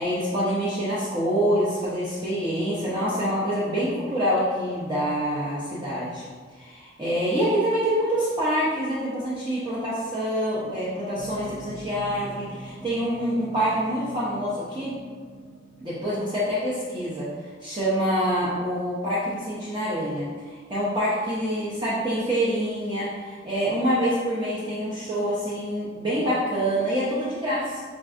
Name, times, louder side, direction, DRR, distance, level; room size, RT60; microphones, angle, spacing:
voice 1, 0.0-6.2 6.5-15.0 15.8-17.3 17.6-27.8, equal, 25° right, -9 dB, 0.6 m, -26 dB
sound 1, 11.2-16.2, right 1 dB, 75° right, 0.7 m, -42 dB
5.8 x 2.5 x 2.5 m, 1.5 s
head